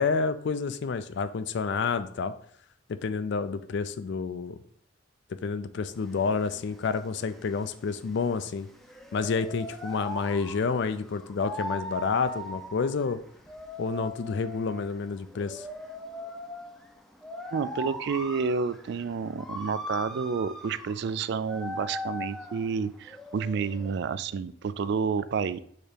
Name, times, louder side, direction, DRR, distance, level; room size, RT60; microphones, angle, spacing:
voice 1, 0.0-2.3 3.0-4.6 5.4-8.7 9.1-13.2 13.8-15.7, left 5 dB, 60° left, 12 dB, 0.4 m, -29 dB
sound 1, 5.9-24.0, left 1 dB, ahead, 0.5 m, -40 dB
voice 2, 17.5-25.6, right 5 dB, 55° right, 15 dB, 0.3 m, -30 dB
6.5 x 3.0 x 5.0 m, 0.63 s
head